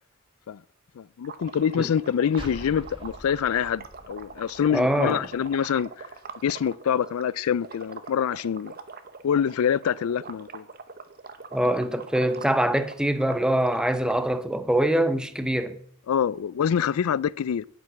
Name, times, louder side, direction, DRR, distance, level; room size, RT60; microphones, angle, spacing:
voice 1, 1.0-6.1 6.4-8.7 9.2-10.6 16.1-17.6, left 8 dB, 85° left, 0.4 m, -25 dB
sound 1, 1.2-7.2 7.6-14.2, right 5 dB, 45° right, 0.9 m, -42 dB
sound 2, 2.3-5.9, right 1 dB, 25° right, 1.4 m, -45 dB
voice 2, 4.7-5.2 11.5-15.8, right 1 dB, 5° right, 0.7 m, -24 dB
9.3 x 7.7 x 7.4 m
head